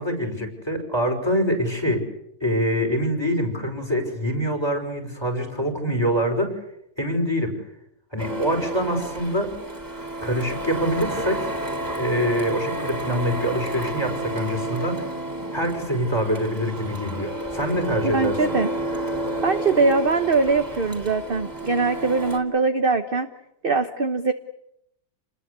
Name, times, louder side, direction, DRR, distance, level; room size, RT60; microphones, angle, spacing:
voice 1, 0.0-2.0 2.4-6.5 7.0-7.5 8.1-9.5 10.2-11.5 12.0-15.0 15.5-18.6, equal, 15° left, 5 dB, 5.7 m, -25 dB
Printer, 8.2-22.4, right 1 dB, 10° right, 3.5 m, -31 dB
voice 2, 18.0-18.7 19.4-23.3 23.6-24.3, right 4 dB, 35° right, 7 dB, 1.3 m, -22 dB
29.5 x 21.0 x 8.4 m, 0.79 s
omnidirectional pair, 1.8 m